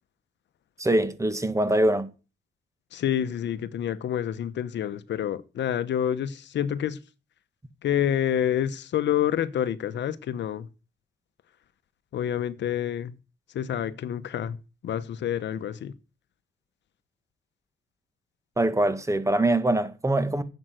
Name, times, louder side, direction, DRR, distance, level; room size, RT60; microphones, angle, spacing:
voice 1, 0.8-2.1 18.6-20.4, right 1 dB, 15° right, 1.5 m, -23 dB
voice 2, 2.9-7.0 7.8-10.7 12.1-13.1 13.5-14.6 14.8-15.9, left 10 dB, 65° left, 0.9 m, -28 dB
11.0 x 7.8 x 7.7 m
cardioid pair, 90°, 20 cm